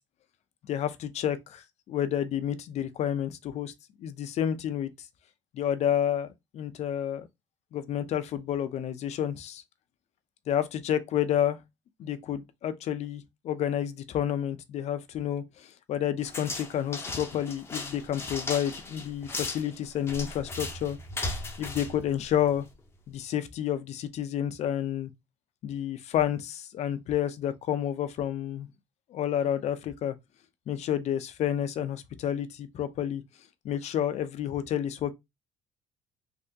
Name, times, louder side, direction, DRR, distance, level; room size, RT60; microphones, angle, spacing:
voice 1, 0.7-3.7 4.0-4.9 5.5-6.3 6.5-7.3 7.7-9.6 10.5-11.6 12.0-21.0 21.6-22.7 23.1-25.1 25.6-28.7 29.1-30.1 30.7-33.2 33.6-35.1, left 10 dB, 55° left, 0.5 m, -30 dB
sound 1, 16.2-22.8, left 2 dB, 20° left, 0.7 m, -37 dB
3.5 x 2.7 x 2.7 m
cardioid pair, 120°, 13 cm